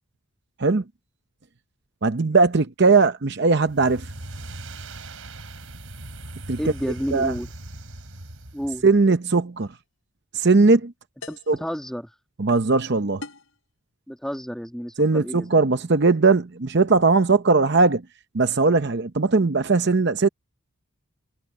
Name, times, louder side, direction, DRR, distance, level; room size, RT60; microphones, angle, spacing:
voice 1, 2.0-4.1 6.5-6.7 7.1-7.3 8.8-9.8 10.3-10.9 11.5-11.6 12.4-13.3 15.0-18.1 18.3-20.3, right 3 dB, 50° right, 0.7 m, -19 dB
sound 1, 3.6-8.9, right 2 dB, 70° right, 3.6 m, -39 dB
voice 2, 6.6-7.5 8.5-8.8 11.3-12.1 14.1-15.5, equal, ahead, 1.6 m, -31 dB
sound 2, 9.6-9.8 11.2-11.6 13.2-13.6, left 3 dB, 70° left, 5.0 m, -41 dB
head